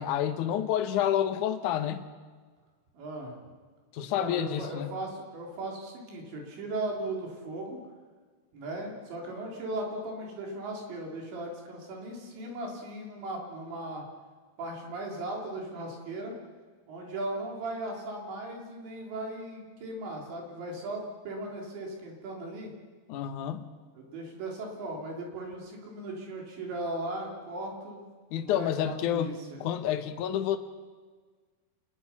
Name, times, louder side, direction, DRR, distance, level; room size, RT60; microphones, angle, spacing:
voice 1, 0.0-2.1 3.9-5.0 23.1-23.7 28.3-29.3 29.6-30.6, left 10 dB, 75° left, 8 dB, 1.9 m, -29 dB
voice 2, 2.9-3.4 4.1-7.8 8.5-14.1 14.6-16.3 16.9-22.7 24.0-28.1 28.3-29.6, right 2 dB, 80° right, 0 dB, 6.0 m, -37 dB
28.0 x 20.0 x 6.0 m, 1.5 s
omnidirectional pair, 5.0 m